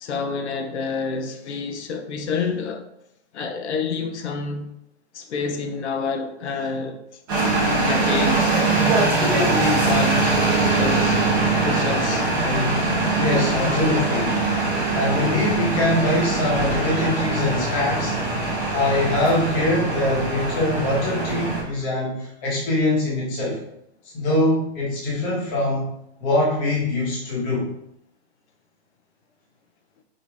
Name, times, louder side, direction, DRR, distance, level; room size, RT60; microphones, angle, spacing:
voice 1, 0.0-2.9 3.3-4.7 5.1-7.0 7.8-9.1 9.6-10.3 10.8-11.2 11.6-12.9, left 4 dB, 80° left, 0.7 m, -28 dB
sound 1, 7.3-21.6, right 2 dB, 20° right, 0.9 m, -22 dB
voice 2, 13.1-14.4 14.9-18.2 18.7-23.6 24.1-25.9 26.2-27.7, left 1 dB, 15° left, 1.0 m, -23 dB
5.1 x 2.8 x 3.4 m
hypercardioid pair, 175°, 33 cm